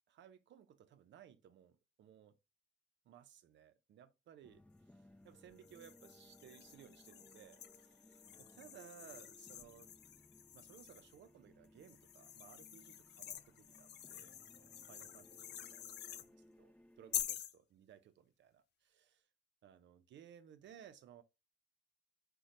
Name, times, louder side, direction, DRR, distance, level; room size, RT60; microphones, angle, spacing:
voice 1, 0.0-2.4 3.0-9.9 10.5-19.3 19.6-21.2, right 9 dB, 70° right, 0.7 m, -60 dB
sound 1, 4.4-17.3, left 1 dB, 5° left, 0.7 m, -64 dB
sound 2, 5.6-11.2 11.8-16.3 17.1-17.6, left 10 dB, 60° left, 0.4 m, -48 dB
4.0 x 2.3 x 3.1 m
cardioid pair, 90°, 20 cm